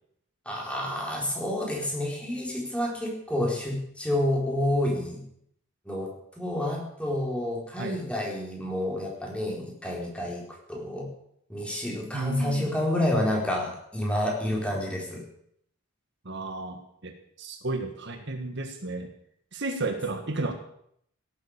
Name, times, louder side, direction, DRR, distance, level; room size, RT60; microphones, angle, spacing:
voice 1, 0.5-5.2 5.9-10.4 10.7-11.1 11.5-15.2, left 1 dB, 5° left, -2 dB, 4.2 m, -29 dB
voice 2, 12.1-12.7 16.2-19.1 19.5-20.5, right 2 dB, 55° right, 6 dB, 1.7 m, -33 dB
17.0 x 8.9 x 8.8 m, 0.70 s
head